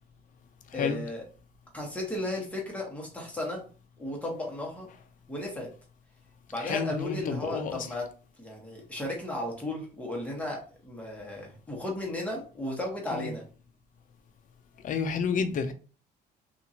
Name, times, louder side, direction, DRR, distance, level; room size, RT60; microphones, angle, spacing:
voice 1, 0.7-1.2 1.7-3.6 4.0-4.9 5.3-5.7 6.5-8.1 8.4-13.4, left 1 dB, 10° left, 1.3 m, -35 dB
voice 2, 6.6-7.9 13.1-13.3 14.8-15.7, left 6 dB, 50° left, 0.6 m, -30 dB
2.8 x 2.5 x 2.8 m
cardioid pair, 110°, 17 cm